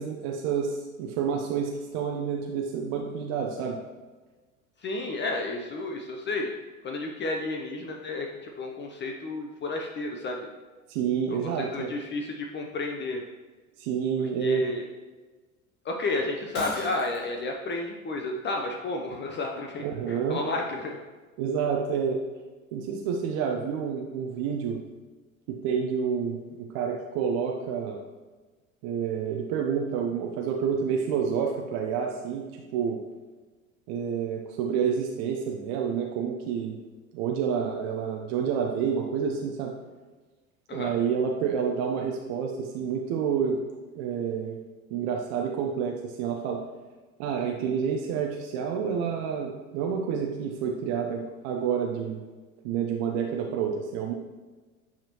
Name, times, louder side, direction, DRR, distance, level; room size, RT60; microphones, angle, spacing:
voice 1, 0.0-3.8 10.9-11.9 13.8-14.6 19.8-20.4 21.4-22.2 22.7-24.8 25.5-28.0 28.8-32.5 32.7-33.0 33.9-36.8 37.1-39.7 40.7-43.6 43.9-44.6 44.9-46.6 47.2-52.2 52.6-54.1, right 7 dB, 50° right, 1 dB, 0.9 m, -29 dB
voice 2, 4.8-6.5 6.8-10.5 11.3-13.2 14.4-14.9 15.8-21.0 40.7-40.9, left 2 dB, 25° left, 2 dB, 0.8 m, -32 dB
Shatter, 16.5-17.4, left 1 dB, 80° left, 2.4 m, -37 dB
9.6 x 5.8 x 3.0 m, 1.3 s
figure-of-eight pair, 80°, 43 cm